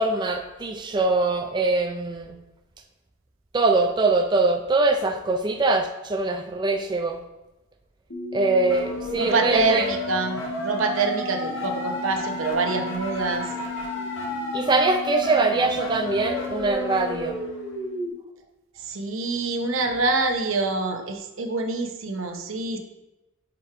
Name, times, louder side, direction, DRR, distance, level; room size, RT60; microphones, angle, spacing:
voice 1, 0.0-2.4 3.5-7.2 8.3-9.9 14.5-17.4, right 3 dB, 20° right, 3 dB, 0.4 m, -23 dB
sound 1, 8.1-18.1, left 2 dB, 70° left, 1.3 m, -31 dB
voice 2, 9.1-13.5 18.8-22.8, right 3 dB, 80° right, 5 dB, 0.8 m, -26 dB
5.1 x 4.4 x 4.8 m, 0.98 s
head